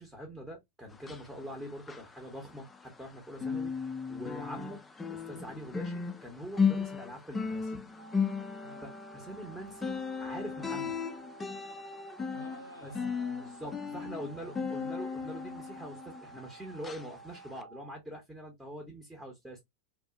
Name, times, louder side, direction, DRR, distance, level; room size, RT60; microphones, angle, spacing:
voice 1, 0.0-4.8 5.1-7.8 8.4-8.5 8.8-11.0 12.8-12.9 13.4-19.6, equal, 5° right, 0.8 m, -44 dB
sound 1, 0.9-3.1 3.3-16.5 16.8-17.1 17.6-17.7, left 5 dB, 15° left, 0.3 m, -36 dB
sound 2, 8.0-18.0, right 5 dB, 60° right, 0.6 m, -53 dB
voice 2, 12.3-13.5 13.9-15.3, left 2 dB, 85° left, 0.5 m, -51 dB
2.9 x 2.3 x 2.3 m
figure-of-eight pair, 90°, 0 cm